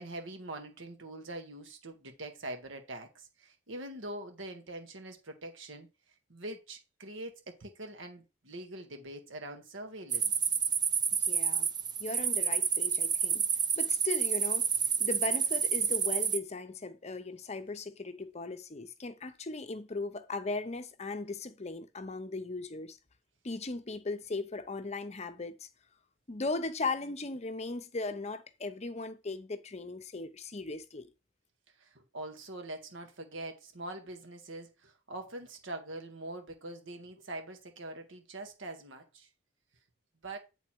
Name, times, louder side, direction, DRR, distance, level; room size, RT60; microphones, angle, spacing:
voice 1, 0.0-5.9 6.3-10.3 31.8-39.3 40.2-40.4, right 1 dB, 85° right, 1.6 m, -43 dB
sound 1, 10.1-16.4, right 7 dB, 20° right, 0.5 m, -29 dB
voice 2, 11.2-11.7 12.0-13.5 13.8-14.7 15.0-23.0 23.4-25.7 26.3-31.1, left 3 dB, 35° left, 0.7 m, -38 dB
8.8 x 3.9 x 4.5 m
head